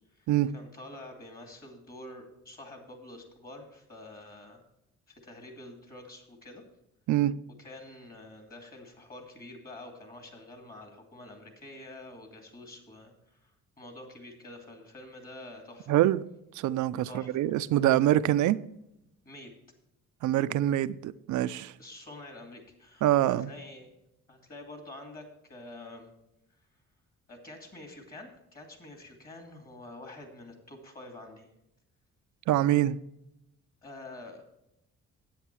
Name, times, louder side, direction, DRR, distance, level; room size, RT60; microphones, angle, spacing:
voice 1, 0.0-4.6 5.1-6.6 7.6-13.5 13.8-15.9 17.0-17.4 19.2-19.5 21.8-23.9 24.3-26.1 27.3-31.5 33.8-34.5, left 2 dB, 30° left, 2.5 m, -47 dB
voice 2, 15.9-16.2 16.6-18.6 20.2-21.7 23.0-23.5 32.5-33.0, right 13 dB, 75° right, 0.5 m, -25 dB
10.0 x 8.3 x 4.6 m
cardioid pair, 90°, 30 cm